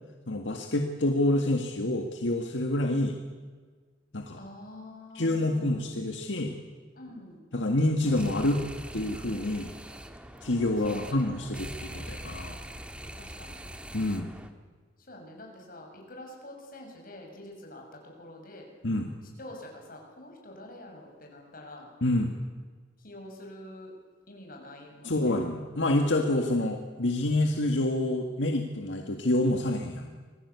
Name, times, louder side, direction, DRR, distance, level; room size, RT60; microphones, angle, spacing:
voice 1, 0.3-3.2 4.1-4.4 5.2-6.6 7.5-8.6 8.9-9.7 10.4-12.6 13.9-14.3 18.8-19.1 22.0-22.3 25.0-30.1, left 1 dB, 80° left, 3 dB, 1.9 m, -27 dB
voice 2, 4.4-5.9 7.0-7.4 10.8-11.5 13.1-13.6 15.1-18.7 19.4-21.9 23.0-23.9 24.3-25.4, left 1 dB, 50° left, 1 dB, 6.5 m, -46 dB
sound 1, 8.0-14.5, right 1 dB, 5° right, 1.5 m, -43 dB
26.5 x 19.0 x 8.4 m, 1.5 s
head